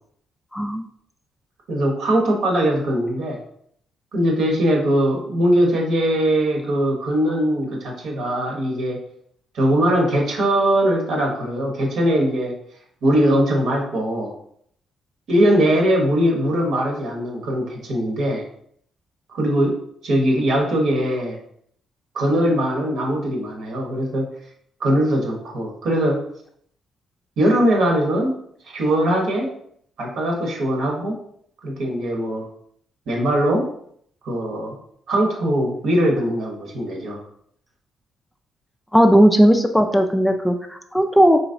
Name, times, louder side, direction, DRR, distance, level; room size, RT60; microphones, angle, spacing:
voice 1, 0.5-0.8 38.9-41.4, equal, 5° left, 5 dB, 0.3 m, -16 dB
voice 2, 1.7-3.4 4.1-9.0 9.5-12.5 13.0-14.3 15.3-18.4 19.3-21.4 22.1-24.3 24.8-26.3 27.4-28.4 28.7-29.5 30.0-31.2 31.6-32.5 33.1-33.7 34.2-34.7 35.1-37.2, equal, 70° right, 0 dB, 1.1 m, -21 dB
3.9 x 2.9 x 2.6 m, 0.67 s
cardioid pair, 90°, 0 cm